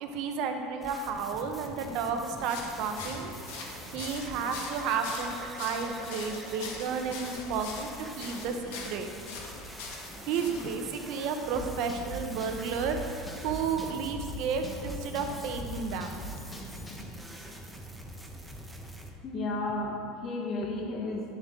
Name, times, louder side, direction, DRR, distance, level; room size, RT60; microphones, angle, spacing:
voice 1, 0.0-3.3 3.9-7.9 8.2-9.1 10.3-13.0 13.4-16.2, right 5 dB, 55° right, 5 dB, 0.9 m, -32 dB
sound 1, 0.8-19.1, right 1 dB, 5° right, 0.8 m, -45 dB
sound 2, 2.3-10.7, left 4 dB, 80° left, 1.6 m, -43 dB
Drum kit / Drum, 11.5-17.1, equal, 15° left, 1.2 m, -41 dB
voice 2, 19.2-21.2, left 2 dB, 35° left, 1 dB, 1.4 m, -33 dB
10.0 x 7.3 x 3.8 m, 2.4 s
supercardioid pair, 145°, 0 cm